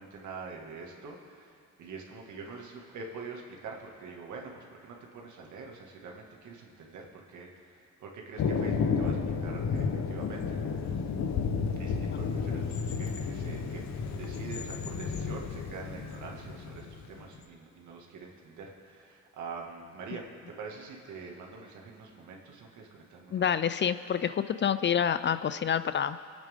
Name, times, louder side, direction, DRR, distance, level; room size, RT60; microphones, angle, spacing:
voice 1, 0.0-11.0 11.8-13.8 14.1-20.3 20.6-23.5, right 4 dB, 75° right, 0 dB, 2.1 m, -45 dB
Thunder, 8.4-17.4, left 5 dB, 65° left, 1.0 m, -32 dB
voice 2, 23.3-26.2, left 8 dB, 40° left, 13 dB, 0.4 m, -28 dB
25.0 x 8.9 x 3.7 m, 2.3 s
cardioid pair, 90°, 30 cm